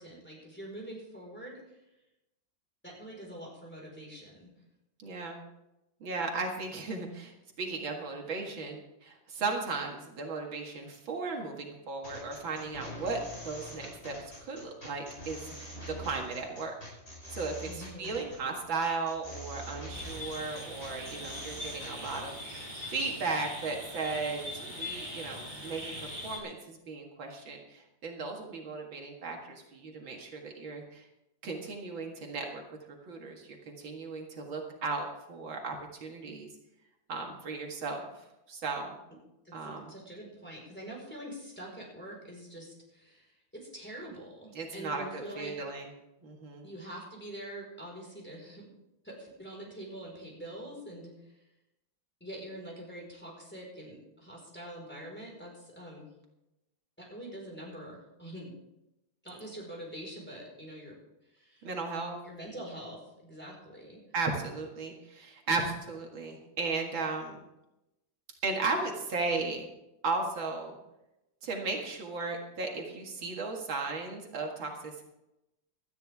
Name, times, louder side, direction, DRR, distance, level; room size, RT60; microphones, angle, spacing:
voice 1, 0.0-1.8 2.8-4.5 17.6-18.1 39.4-45.5 46.6-48.6 49.0-51.3 52.2-56.1 57.0-58.5 59.2-61.0 61.3-61.7 62.2-64.0, right 1 dB, 5° left, -3 dB, 4.6 m, -45 dB
voice 2, 5.0-5.4 6.0-14.2 14.4-16.7 17.3-31.1 31.4-32.6 32.9-36.5 37.1-39.0 39.5-39.8 44.5-45.9 46.2-46.7 61.6-62.2 64.1-67.4 68.4-69.7 70.0-70.7 71.4-75.0, right 3 dB, 80° right, 1 dB, 2.6 m, -36 dB
sound 1, 12.0-22.2, equal, 30° left, 5.6 m, -45 dB
sound 2, 19.9-26.4, left 1 dB, 20° right, 3.5 m, -41 dB
18.0 x 13.0 x 3.6 m, 0.91 s
omnidirectional pair, 2.1 m